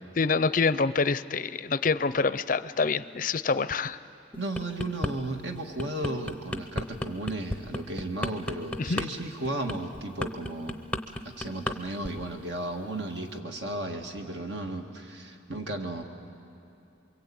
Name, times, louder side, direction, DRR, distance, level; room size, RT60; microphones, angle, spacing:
voice 1, 0.2-4.0 8.8-9.0, left 4 dB, 45° left, 15 dB, 0.5 m, -26 dB
sound 1, 4.3-5.1 5.6-11.8 12.0-12.3, left 1 dB, 5° left, 0.7 m, -33 dB
voice 2, 4.4-10.9 11.4-16.0, right 1 dB, 65° right, 3 dB, 1.8 m, -34 dB
27.5 x 23.0 x 8.7 m, 2.6 s
head